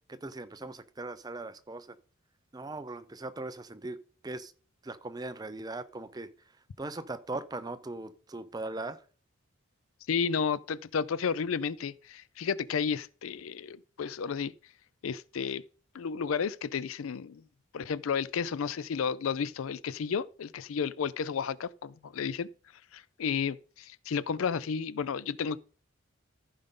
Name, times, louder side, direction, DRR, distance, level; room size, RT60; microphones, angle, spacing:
voice 1, 0.1-2.0 2.5-4.0 4.2-4.5 4.8-6.3 6.8-9.0, right 2 dB, 20° right, 0.5 m, -39 dB
voice 2, 10.1-14.5 15.0-15.6 15.9-17.4 17.7-22.5 22.9-25.6, left 6 dB, 75° left, 0.4 m, -32 dB
14.5 x 5.3 x 3.7 m
head